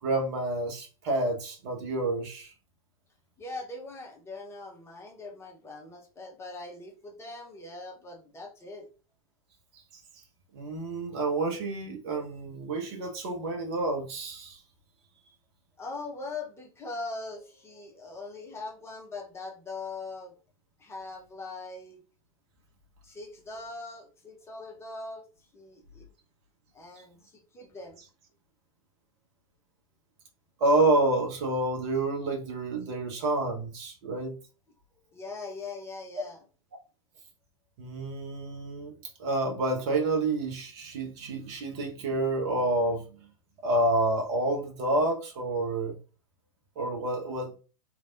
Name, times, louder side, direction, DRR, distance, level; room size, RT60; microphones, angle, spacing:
voice 1, 0.0-2.5 10.5-14.6 30.6-34.3 36.2-36.3 37.8-43.3 43.6-46.0 46.7-47.6, right 2 dB, 50° right, 1.2 m, -29 dB
voice 2, 3.4-8.9 15.8-20.3 20.8-22.0 23.0-25.2 25.5-26.1 26.7-28.0 35.1-36.4, left 3 dB, 15° left, 1.0 m, -41 dB
3.4 x 3.3 x 2.6 m
figure-of-eight pair, 90°, 18 cm